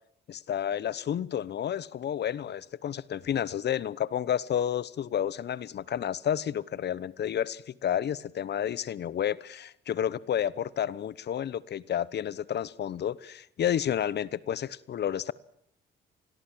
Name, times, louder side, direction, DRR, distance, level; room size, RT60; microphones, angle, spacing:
voice 1, 0.3-15.3, left 9 dB, 60° left, 1.0 m, -31 dB
27.0 x 21.0 x 7.6 m
cardioid pair, 90°, 20 cm